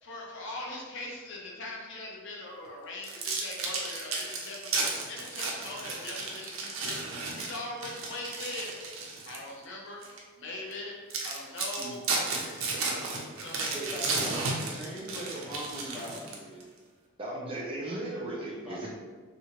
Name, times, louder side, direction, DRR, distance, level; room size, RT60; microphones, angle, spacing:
voice 1, 0.0-8.7 9.2-10.0 10.4-11.0 11.2-12.0 12.3-13.0 13.4-13.7, left 2 dB, 60° left, -2 dB, 0.6 m, -41 dB
sound 1, 3.0-9.5 10.0-10.2 10.7-10.8 11.1-16.6, right 3 dB, 90° right, 0.6 m, -33 dB
voice 2, 13.7-16.6 18.4-18.9, equal, 5° right, -9 dB, 0.9 m, -40 dB
voice 3, 17.2-18.9, right 1 dB, 25° right, -4 dB, 0.4 m, -36 dB
2.9 x 2.4 x 2.8 m, 1.5 s
head